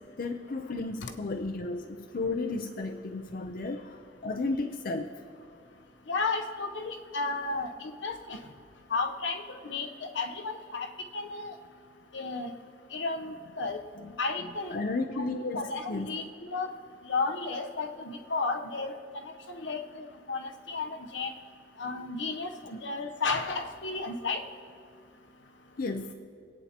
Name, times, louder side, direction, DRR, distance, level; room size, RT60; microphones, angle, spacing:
voice 1, 0.0-5.1 14.0-14.1 14.7-16.1 25.8-26.1, left 3 dB, 50° left, 5 dB, 0.5 m, -33 dB
voice 2, 6.1-8.4 8.9-10.9 11.1-11.6 12.1-12.5 12.9-13.8 14.2-14.8 15.5-16.2 16.5-16.7 17.1-18.9 19.3-21.3 21.8-24.4, left 3 dB, 75° left, 5 dB, 0.9 m, -33 dB
26.0 x 8.8 x 2.9 m, 2.3 s
head